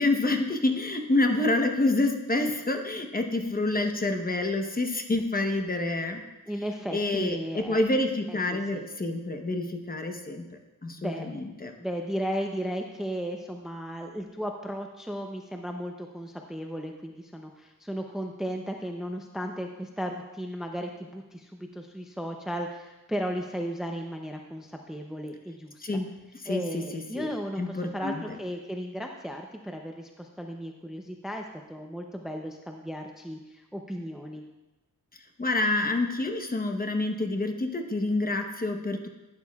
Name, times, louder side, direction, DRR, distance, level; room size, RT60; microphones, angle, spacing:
voice 1, 0.0-6.2 6.9-10.5 10.8-11.7 25.8-26.1 26.4-27.3 27.6-28.2 35.4-39.1, left 2 dB, 25° left, 4 dB, 1.0 m, -27 dB
voice 2, 6.5-7.8 8.3-8.9 11.0-11.3 11.8-25.9 26.5-34.4, equal, ahead, 3 dB, 0.6 m, -35 dB
11.5 x 10.5 x 2.4 m, 1.1 s
wide cardioid pair, 95°, 35 cm